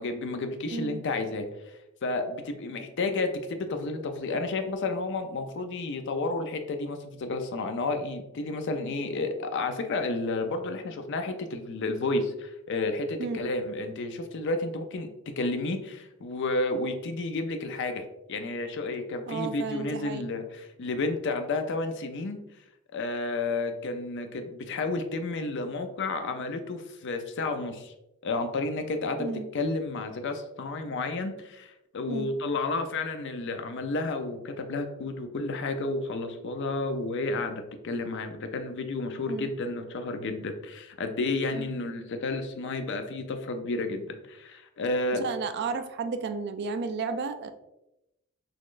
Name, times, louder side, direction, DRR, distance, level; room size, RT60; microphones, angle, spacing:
voice 1, 0.0-1.5 2.0-15.1 15.4-18.0 18.3-22.4 22.9-27.9 28.2-45.2, left 3 dB, 55° left, 6 dB, 0.4 m, -31 dB
voice 2, 0.7-1.0 13.2-13.4 18.9-19.0 19.3-20.2 29.2-29.5 32.1-32.3 39.3-39.5 41.5-41.7 45.1-47.5, right 4 dB, 50° right, 9 dB, 0.3 m, -33 dB
4.1 x 3.0 x 2.4 m, 0.89 s
head